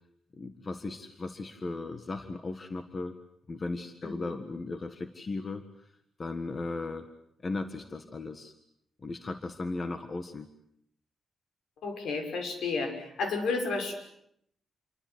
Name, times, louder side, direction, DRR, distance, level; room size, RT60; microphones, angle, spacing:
voice 1, 0.4-3.2 3.5-5.7 6.2-7.1 7.4-8.5 9.0-10.5, left 3 dB, 25° left, 8 dB, 1.6 m, -36 dB
voice 2, 4.0-4.3 11.8-13.9, left 4 dB, 75° left, 5 dB, 6.2 m, -32 dB
28.0 x 24.0 x 8.0 m, 0.73 s
wide cardioid pair, 165°, 0 cm